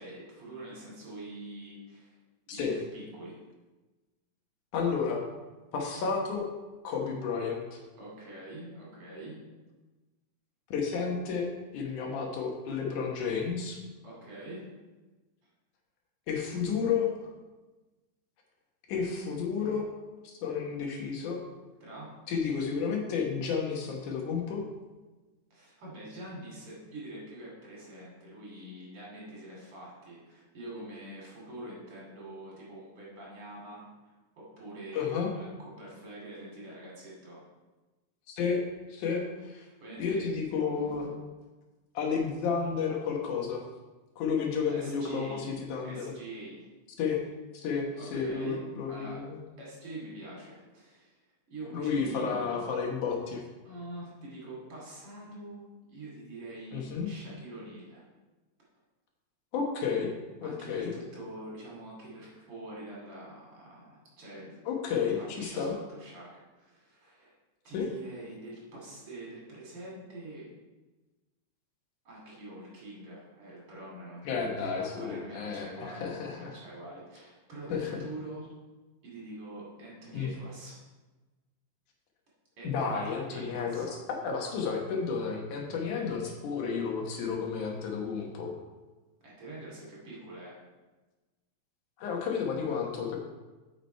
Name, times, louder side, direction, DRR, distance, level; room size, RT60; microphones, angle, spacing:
voice 1, 0.0-2.2 2.5-3.4 8.0-9.4 14.0-14.7 21.8-22.1 25.5-33.8 34.4-37.4 39.6-40.3 44.7-45.5 45.8-46.7 48.0-48.6 48.9-49.2 49.6-51.2 51.5-53.0 53.6-55.6 55.9-58.0 60.4-64.6 65.1-67.3 67.6-70.5 72.0-78.5 79.0-80.8 82.6-83.9 85.9-86.0 89.2-90.6, right 1 dB, 45° right, -5 dB, 3.3 m, -45 dB
voice 2, 4.7-5.2 5.7-6.5 6.8-7.8 10.7-11.5 11.7-13.8 16.3-17.3 18.9-19.9 20.2-21.4 22.3-24.6 34.9-35.3 38.3-38.6 38.9-39.7 40.0-41.2 41.9-43.6 44.2-46.0 47.0-47.2 47.5-49.4 51.7-53.4 56.7-57.1 59.5-60.1 60.4-60.9 64.7-65.7 67.7-67.9 74.3-76.6 77.7-78.0 80.1-80.3 82.6-88.5 92.0-93.2, left 6 dB, 80° left, 0 dB, 2.8 m, -31 dB
8.4 x 6.1 x 4.5 m, 1.2 s
omnidirectional pair, 3.5 m